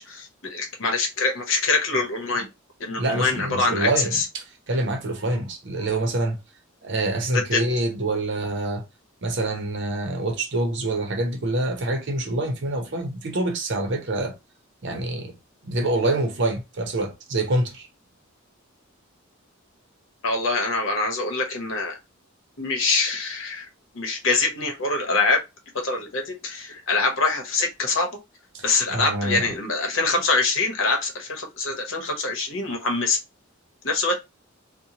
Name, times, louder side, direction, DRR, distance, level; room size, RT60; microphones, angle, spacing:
voice 1, 0.0-2.5 2.8-4.2 7.3-7.6 20.2-22.0 22.6-23.6 23.9-25.4 25.8-28.2 28.6-33.2 33.8-34.2, left 3 dB, 65° left, 0.9 m, -24 dB
voice 2, 3.0-6.4 6.8-8.8 9.2-14.3 14.8-15.3 15.6-17.9 28.5-28.6 28.9-29.5, right 2 dB, 60° right, 0.7 m, -26 dB
2.8 x 2.1 x 2.8 m
head